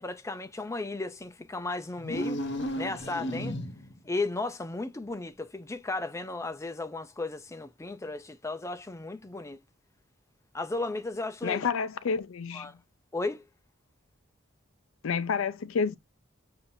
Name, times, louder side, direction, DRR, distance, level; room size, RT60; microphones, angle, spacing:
voice 1, 0.0-2.4 2.8-3.6 4.0-9.6 10.5-11.7 12.5-12.7 13.1-13.4, left 2 dB, 15° left, 0.4 m, -35 dB
sound 1, 2.0-4.0, equal, 60° left, 0.9 m, -34 dB
voice 2, 11.4-12.7 15.0-16.0, left 5 dB, 85° left, 0.5 m, -29 dB
7.0 x 2.6 x 2.7 m
head